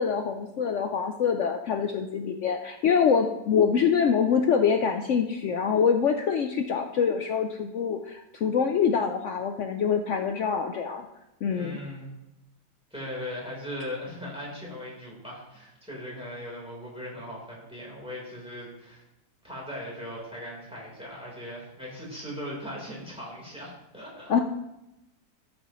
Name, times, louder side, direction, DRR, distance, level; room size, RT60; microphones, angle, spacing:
voice 1, 0.0-11.1 11.4-11.8 24.3-24.4, left 6 dB, 70° left, 5 dB, 0.7 m, -25 dB
voice 2, 11.5-12.1 12.9-19.0 19.4-24.3, left 1 dB, 5° right, -5 dB, 3.4 m, -39 dB
13.5 x 7.5 x 3.0 m, 0.92 s
omnidirectional pair, 1.8 m